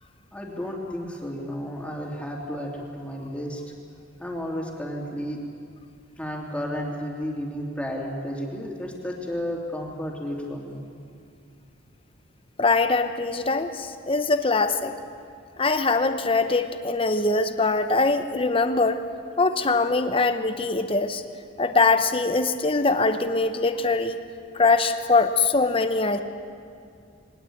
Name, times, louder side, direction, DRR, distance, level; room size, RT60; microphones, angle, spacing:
voice 1, 0.3-3.6 4.2-5.4 6.2-10.8, equal, 5° left, -1 dB, 2.8 m, -32 dB
voice 2, 12.6-14.9 15.6-19.0 19.4-21.2 21.6-24.2 24.5-26.2, left 3 dB, 30° left, 9 dB, 0.8 m, -22 dB
21.0 x 18.5 x 8.6 m, 2.3 s
head